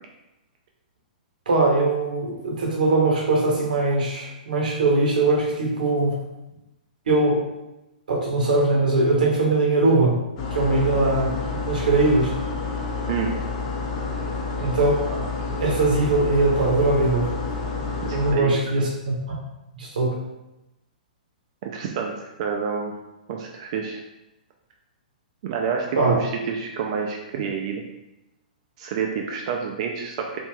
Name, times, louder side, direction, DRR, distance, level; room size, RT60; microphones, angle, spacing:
voice 1, 1.5-6.1 7.1-7.4 8.1-10.2 10.5-11.3 11.7-12.3 14.6-15.3 15.6-17.3 18.1-19.2 19.8-20.1 26.0-26.2, right 2 dB, 70° right, -2 dB, 0.8 m, -21 dB
sound 1, 10.4-18.3, left 4 dB, 45° left, 0.6 m, -29 dB
voice 2, 18.0-18.9 21.6-22.9 23.3-24.0 25.4-27.8 28.8-30.4, right 6 dB, 45° right, 1 dB, 0.4 m, -28 dB
3.1 x 2.5 x 2.2 m, 0.96 s
figure-of-eight pair, 115°, 5 cm